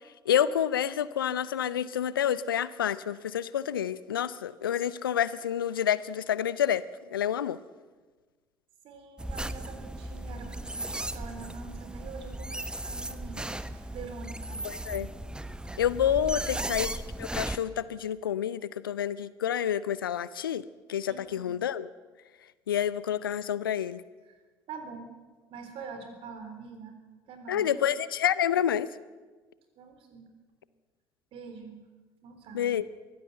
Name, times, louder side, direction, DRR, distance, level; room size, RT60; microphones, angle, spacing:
voice 1, 0.3-6.8 7.1-7.6 14.6-15.1 15.8-16.9 17.2-20.6 20.9-21.9 22.7-24.0 27.5-28.9 32.5-32.8, left 9 dB, 75° left, 18 dB, 0.7 m, -28 dB
voice 2, 8.8-14.6 15.6-15.8 16.3-16.8 21.1-21.5 24.2-24.4 24.7-25.1 25.5-27.0 27.3-27.9 29.8-30.3 31.3-31.8 32.2-32.7, right 5 dB, 50° right, 7 dB, 3.8 m, -45 dB
sound 1, 9.2-17.6, right 1 dB, 5° right, 1.1 m, -36 dB
23.0 x 15.5 x 7.9 m, 1.4 s
figure-of-eight pair, 55°, 12 cm